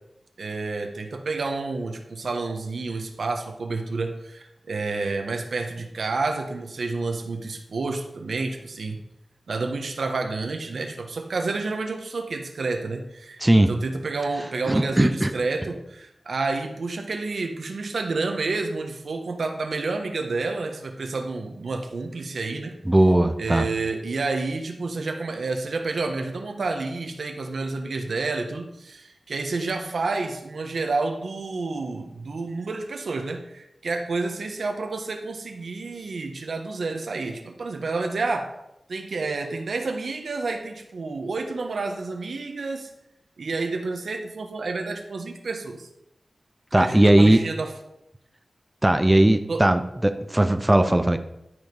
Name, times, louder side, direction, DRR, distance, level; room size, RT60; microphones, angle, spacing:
voice 1, 0.4-9.0 9.5-13.4 13.7-22.7 23.4-38.5 38.9-42.9 43.4-45.9 46.8-47.7 49.5-49.6, right 3 dB, 85° right, 5 dB, 1.3 m, -29 dB
voice 2, 13.4-13.7 14.7-15.3 22.9-23.7 46.7-47.4 48.8-51.2, right 1 dB, 15° right, 8 dB, 0.6 m, -18 dB
13.0 x 5.0 x 5.4 m, 0.83 s
wide cardioid pair, 90°, 0 cm